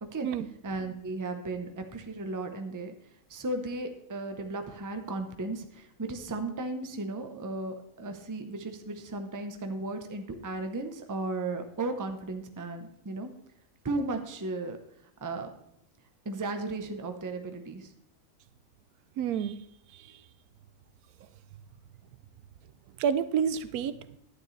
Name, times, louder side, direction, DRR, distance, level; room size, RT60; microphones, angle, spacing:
voice 1, 0.6-2.9 3.3-13.3 13.8-14.8 15.2-15.5 16.2-17.9, right 2 dB, 20° right, 7 dB, 0.5 m, -35 dB
voice 2, 19.2-19.6 19.9-20.2 23.0-24.2, right 8 dB, 90° right, 14 dB, 1.1 m, -29 dB
11.5 x 9.7 x 3.2 m, 0.76 s
omnidirectional pair, 1.5 m